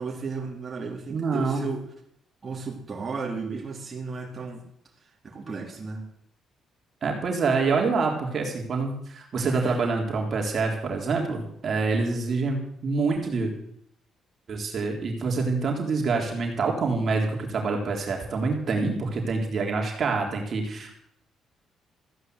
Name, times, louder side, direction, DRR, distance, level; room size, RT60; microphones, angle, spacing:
voice 1, 0.0-1.8 2.4-4.6 5.2-6.1 9.4-9.8, right 4 dB, 35° right, -1 dB, 3.5 m, -34 dB
voice 2, 1.1-1.7 7.0-13.5 14.5-21.0, right 4 dB, 50° right, 1 dB, 3.6 m, -26 dB
15.0 x 9.8 x 8.0 m, 0.71 s
cardioid pair, 80°, 0 cm